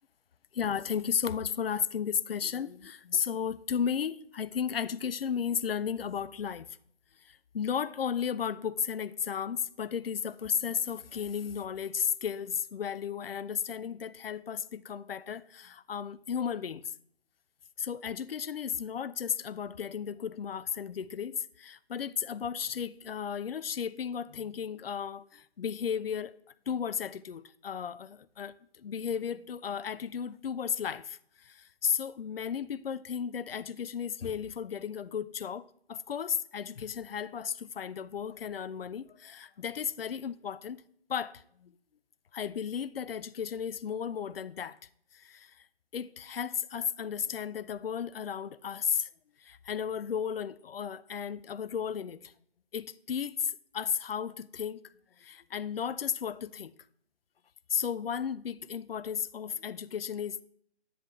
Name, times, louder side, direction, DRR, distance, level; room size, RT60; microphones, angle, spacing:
voice 1, 0.5-6.7 7.2-16.9 17.8-26.3 26.7-40.8 41.1-41.7 42.3-44.8 45.1-45.7 45.9-49.1 49.4-52.3 52.7-56.7 57.7-60.4, left 7 dB, 60° left, 0.5 m, -34 dB
11.0 x 9.9 x 3.2 m
figure-of-eight pair, 150°, 33 cm